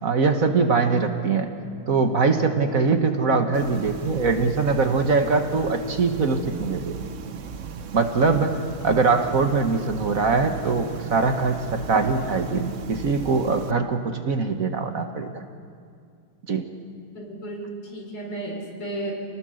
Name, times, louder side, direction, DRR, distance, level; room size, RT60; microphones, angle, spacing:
voice 1, 0.0-1.5 1.9-6.9 7.9-8.6 8.8-15.4 16.5-16.7, right 4 dB, 45° right, 6 dB, 1.6 m, -22 dB
sound 1, 3.5-13.7, right 6 dB, 65° right, 0.7 m, -37 dB
voice 2, 17.1-19.1, right 1 dB, 90° left, 1 dB, 5.3 m, -33 dB
29.5 x 20.0 x 6.5 m, 2.2 s
omnidirectional pair, 2.4 m